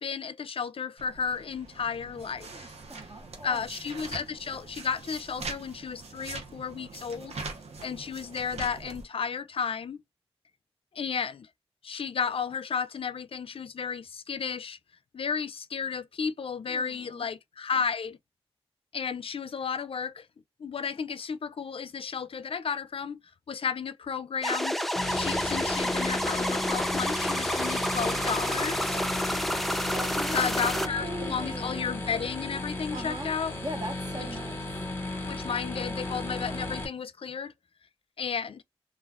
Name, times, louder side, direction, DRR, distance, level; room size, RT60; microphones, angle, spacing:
voice 1, 0.0-2.7 3.4-7.4 7.8-10.0 10.9-11.5 11.8-14.8 15.1-18.2 18.9-20.3 20.6-23.2 23.5-24.7 25.1-29.0 30.3-33.6 34.2-34.3 35.2-37.5 38.2-38.6, left 6 dB, 65° left, 0.4 m, -33 dB
sound 1, 1.0-9.0, right 3 dB, 85° right, 0.7 m, -42 dB
voice 2, 2.5-3.6 16.7-17.3 28.9-29.1 29.9-30.5 30.7-31.9 32.9-34.6, right 1 dB, 40° right, 0.8 m, -40 dB
sound 2, 24.4-30.9, equal, ahead, 0.4 m, -29 dB
sound 3, 24.9-36.9, left 2 dB, 25° left, 0.9 m, -35 dB
2.3 x 2.2 x 3.4 m
cardioid pair, 45°, 10 cm